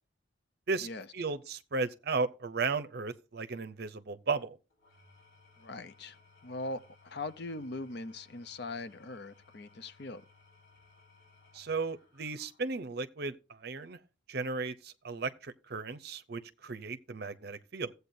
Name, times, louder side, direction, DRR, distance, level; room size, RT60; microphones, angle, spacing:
voice 1, 1.1-4.6 11.5-14.0 14.3-17.9, right 4 dB, 50° right, 0.6 m, -35 dB
Engine / Tools, 4.7-13.0, left 3 dB, 85° left, 4.2 m, -62 dB
voice 2, 5.6-6.2 6.4-10.2, left 2 dB, 55° left, 0.6 m, -41 dB
14.5 x 8.1 x 2.6 m
head